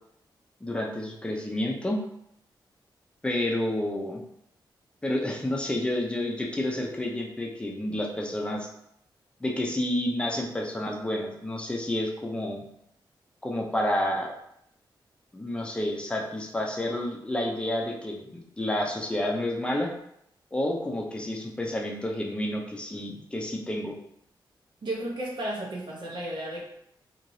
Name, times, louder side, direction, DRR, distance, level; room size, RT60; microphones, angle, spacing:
voice 1, 0.6-2.0 3.2-4.2 5.0-8.7 9.4-12.6 13.4-14.3 15.3-19.9 20.5-23.9, left 1 dB, 15° left, 0 dB, 0.5 m, -30 dB
voice 2, 24.8-26.7, right 1 dB, 65° right, -3 dB, 0.7 m, -33 dB
3.1 x 2.8 x 2.7 m, 0.76 s
wide cardioid pair, 125°, 8 cm